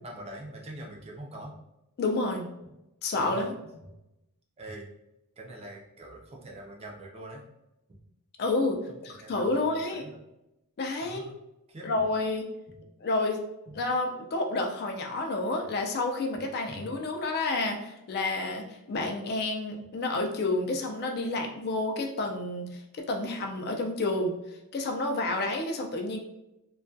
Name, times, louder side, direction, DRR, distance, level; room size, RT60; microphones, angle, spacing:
voice 1, 0.0-1.5 2.6-2.7 3.2-3.7 4.6-4.9 5.4-7.4 9.1-10.2 11.0-11.3 11.7-12.0 12.7-12.8 13.8-13.9 16.7-16.9 18.9-19.1, right 1 dB, 25° right, -1 dB, 0.4 m, -44 dB
voice 2, 2.0-2.5 3.0-3.5 8.4-10.1 10.8-11.3 11.8-12.5 13.0-13.4 13.7-24.3 24.7-26.2, left 2 dB, 45° left, 3 dB, 0.4 m, -30 dB
2.3 x 2.2 x 2.5 m, 0.90 s
head